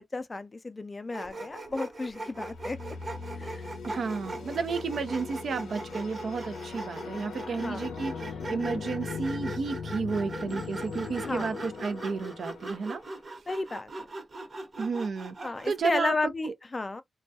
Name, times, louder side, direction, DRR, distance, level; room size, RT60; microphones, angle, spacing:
voice 1, 0.0-3.0 3.4-3.7 7.5-7.8 11.2-11.5 13.5-13.9 15.4-17.0, left 3 dB, 30° left, 0.4 m, -33 dB
Sawing, 1.1-15.8, right 2 dB, 45° right, 1.0 m, -40 dB
sound 1, 1.2-1.8 2.3-13.0, left 5 dB, 90° left, 0.5 m, -40 dB
voice 2, 3.8-13.0 14.8-15.3 15.6-16.1 16.4-16.5, right 4 dB, 70° right, 0.5 m, -32 dB
2.2 x 2.2 x 2.6 m
cardioid pair, 70°, 0 cm